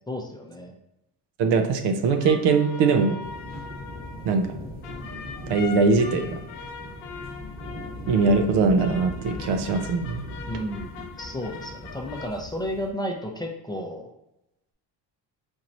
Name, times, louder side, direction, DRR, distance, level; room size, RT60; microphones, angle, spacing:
voice 1, 0.1-0.8 10.5-10.9 11.2-14.1, equal, 10° left, 1 dB, 0.6 m, -32 dB
voice 2, 1.4-3.2 4.2-4.6 5.5-6.4 8.1-10.2, right 4 dB, 70° right, 6 dB, 0.7 m, -21 dB
sound 1, 2.1-12.3, left 5 dB, 85° left, 0.7 m, -41 dB
sound 2, 3.2-12.9, left 1 dB, 20° right, 1.0 m, -39 dB
4.4 x 3.0 x 2.6 m, 0.90 s
cardioid pair, 90°, 43 cm